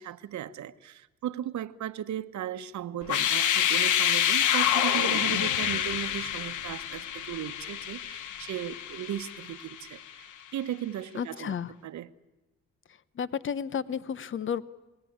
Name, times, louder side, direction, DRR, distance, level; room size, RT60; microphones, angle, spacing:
voice 1, 0.0-11.5 11.8-12.1, right 11 dB, 70° right, 11 dB, 1.1 m, -36 dB
sound 1, 3.0-9.9, left 10 dB, 80° left, 1.2 m, -27 dB
voice 2, 11.1-11.7 13.2-14.6, left 7 dB, 40° left, 16 dB, 1.0 m, -32 dB
28.0 x 20.0 x 8.7 m, 1.1 s
cardioid pair, 90°, 30 cm